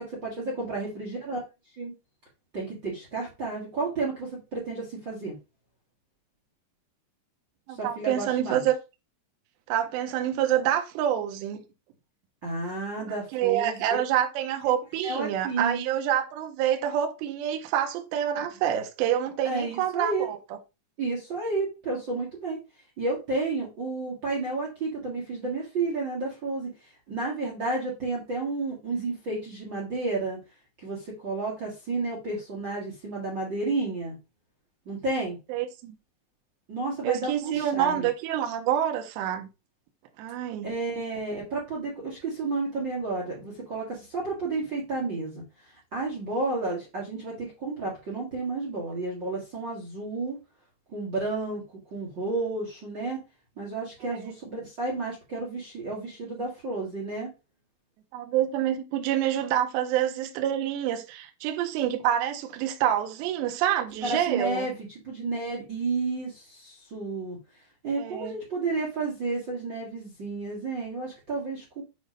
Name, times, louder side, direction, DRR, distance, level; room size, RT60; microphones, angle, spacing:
voice 1, 0.0-1.4 1.8-1.9 2.5-5.3 7.7-8.6 12.4-13.8 15.0-15.8 19.4-20.3 21.0-22.6 23.0-30.4 30.8-34.1 34.8-35.4 36.7-38.1 40.6-50.4 50.9-53.2 53.6-57.3 64.0-64.7 65.0-67.4 67.8-71.8, right 3 dB, 50° right, 1.3 m, -31 dB
voice 2, 7.7-8.7 9.7-11.6 13.3-20.4 35.5-35.9 37.0-39.5 40.2-40.7 54.0-54.2 58.1-64.7 68.0-68.4, right 11 dB, 80° right, 3.0 m, -27 dB
8.5 x 3.1 x 5.1 m
omnidirectional pair, 5.2 m